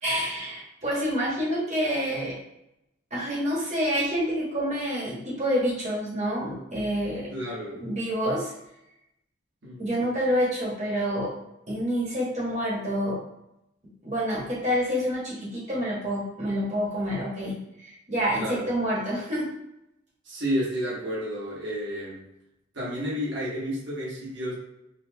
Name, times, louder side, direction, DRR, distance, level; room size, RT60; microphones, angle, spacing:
voice 1, 0.0-2.3 3.1-7.3 7.8-8.5 9.8-11.3 11.7-13.2 14.0-19.5, equal, 35° right, -6 dB, 1.4 m, -28 dB
voice 2, 7.3-7.8 9.6-9.8 18.4-18.7 20.2-22.2 22.7-24.5, equal, 60° right, -6 dB, 1.4 m, -31 dB
4.2 x 2.6 x 3.0 m, 0.84 s
head